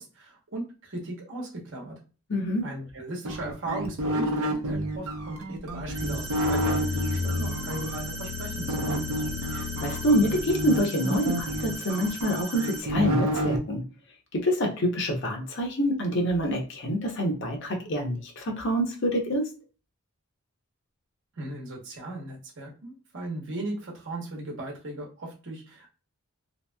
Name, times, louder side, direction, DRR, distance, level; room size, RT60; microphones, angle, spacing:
voice 1, 0.0-2.0 2.6-9.1 21.4-25.9, right 2 dB, 55° right, -1 dB, 1.0 m, -37 dB
voice 2, 2.3-2.7 9.5-13.8 14.3-19.5, equal, 55° left, 2 dB, 0.7 m, -26 dB
sound 1, 3.2-8.0 8.7-13.6, right 1 dB, 75° right, 0.6 m, -29 dB
sound 2, 5.6-10.7, left 4 dB, 90° left, 0.3 m, -34 dB
sound 3, 5.9-12.8, right 2 dB, 15° right, 0.4 m, -39 dB
2.9 x 2.6 x 2.2 m, 0.35 s
head